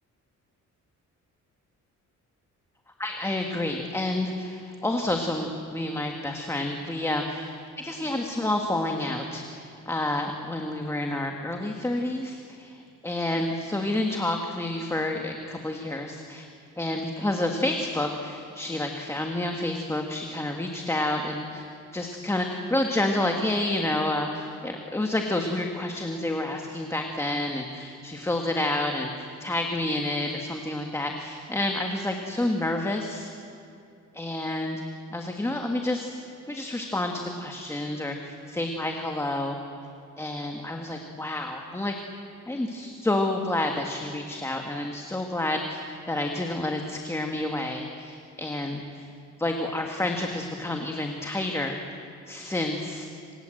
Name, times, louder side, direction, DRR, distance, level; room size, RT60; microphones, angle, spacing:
voice 1, 3.0-16.4 16.8-33.3 34.1-34.8 35.1-39.6 40.2-41.9 42.5-45.8 46.1-49.1 49.4-52.0 52.3-53.1, left 1 dB, 10° left, 3 dB, 1.6 m, -29 dB
27.0 x 27.0 x 7.8 m, 2.7 s
cardioid pair, 175°, 31 cm